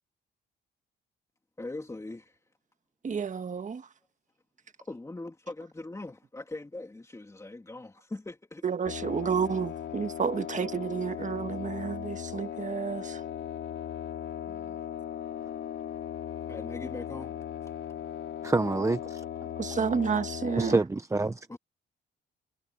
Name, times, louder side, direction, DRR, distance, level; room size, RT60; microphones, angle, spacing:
voice 1, 1.6-2.5 4.9-8.6 9.3-9.4 14.5-14.8 16.5-17.3 17.6-17.7 21.2-21.6, left 2 dB, 15° left, 3.0 m, -41 dB
voice 2, 3.0-3.9 8.6-13.2 19.6-20.8, right 6 dB, 40° right, 1.6 m, -31 dB
sound 1, 8.9-20.7, left 9 dB, 70° left, 3.1 m, -38 dB
voice 3, 18.4-19.2 20.6-21.5, right 3 dB, 15° right, 0.9 m, -27 dB
cardioid pair, 90°, 20 cm